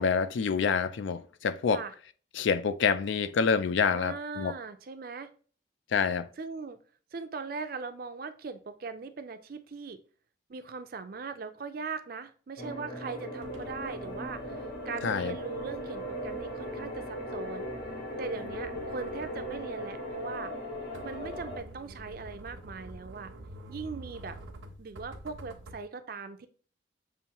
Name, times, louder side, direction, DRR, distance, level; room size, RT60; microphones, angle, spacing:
voice 1, 0.0-1.8 2.3-4.5 5.9-6.3 15.0-15.4, left 5 dB, 75° left, 0.4 m, -27 dB
voice 2, 3.9-5.3 6.4-6.8 7.1-10.0 10.5-17.7 18.2-20.5 21.0-23.3 23.7-24.4 24.8-26.5, right 4 dB, 50° right, 0.4 m, -40 dB
sound 1, 12.6-21.6, equal, 50° left, 1.3 m, -38 dB
sound 2, 13.4-25.8, right 1 dB, 80° right, 0.9 m, -49 dB
6.9 x 2.6 x 2.9 m
head